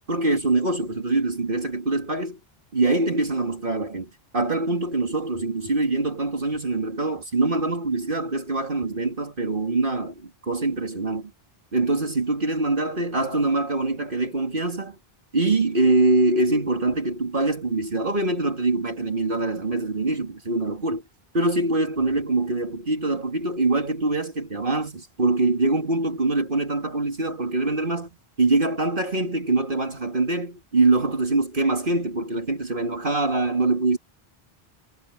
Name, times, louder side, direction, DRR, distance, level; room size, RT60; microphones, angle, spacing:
voice 1, 0.1-2.4 2.7-11.3 11.7-15.0 15.3-21.0 21.3-34.0, right 2 dB, 55° right, 2.7 m, -24 dB
omnidirectional pair, 1.0 m